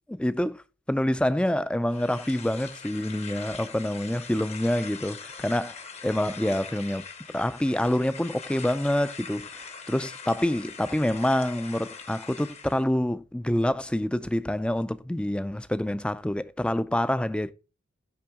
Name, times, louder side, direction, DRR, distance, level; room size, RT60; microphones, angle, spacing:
voice 1, 0.1-0.6 0.9-7.1 7.3-17.5, left 1 dB, 5° left, 0.3 m, -27 dB
sound 1, 1.9-12.8, left 5 dB, 35° left, 0.8 m, -42 dB
5.7 x 5.3 x 3.5 m
head